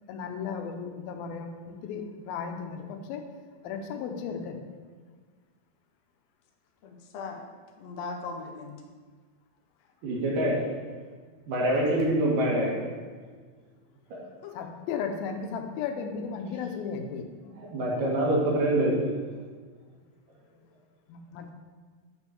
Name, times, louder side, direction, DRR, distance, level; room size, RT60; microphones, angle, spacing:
voice 1, 0.1-3.3 3.6-4.6 14.5-17.5 21.1-21.5, left 6 dB, 85° left, 5 dB, 2.7 m, -35 dB
voice 2, 6.8-7.5 7.8-8.8 14.4-14.6, left 4 dB, 65° left, 1 dB, 1.8 m, -38 dB
voice 3, 10.0-10.6 11.5-12.8 17.6-18.9, right 1 dB, 65° right, -3 dB, 3.4 m, -25 dB
8.5 x 4.4 x 7.0 m, 1.5 s
omnidirectional pair, 4.1 m